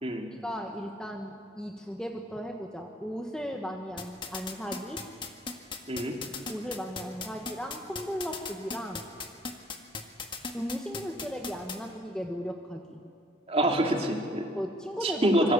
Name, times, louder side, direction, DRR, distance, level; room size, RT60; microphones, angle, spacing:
voice 1, 0.4-5.0 6.5-9.1 10.5-13.0 14.5-15.5, equal, 5° left, 2 dB, 1.4 m, -36 dB
sound 1, 4.0-11.8, left 4 dB, 25° left, 1.8 m, -36 dB
voice 2, 13.5-14.5 15.0-15.5, right 1 dB, 30° right, 2 dB, 2.7 m, -26 dB
25.5 x 23.5 x 8.5 m, 2.3 s
head